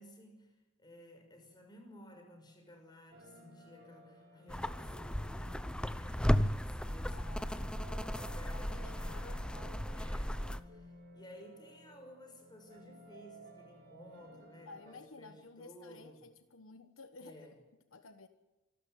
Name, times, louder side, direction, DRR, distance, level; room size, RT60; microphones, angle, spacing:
voice 1, 0.0-16.3 17.2-17.6, left 1 dB, 20° left, 3 dB, 6.0 m, -55 dB
sound 1, 3.1-14.9, right 1 dB, 55° right, 4.8 m, -57 dB
sound 2, 4.5-10.6, equal, 5° left, 0.7 m, -35 dB
voice 2, 7.1-8.0 8.5-9.8 14.7-17.5 17.9-18.3, left 3 dB, 75° left, 9 dB, 1.2 m, -54 dB
26.0 x 13.0 x 9.3 m, 1.1 s
head